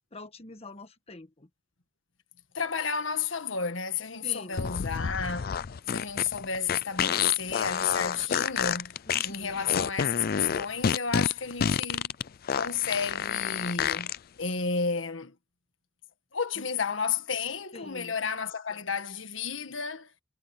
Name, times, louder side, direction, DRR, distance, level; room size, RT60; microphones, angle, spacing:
voice 1, 0.1-1.5 4.2-4.6 9.1-9.6 16.6-16.7 17.7-18.1, left 2 dB, 30° left, 1.4 m, -45 dB
voice 2, 2.5-8.9 9.2-12.1 12.5-14.1 14.4-15.3 16.3-20.1, left 6 dB, 85° left, 1.7 m, -31 dB
sound 1, 4.5-14.2, left 7 dB, 50° left, 0.4 m, -29 dB
head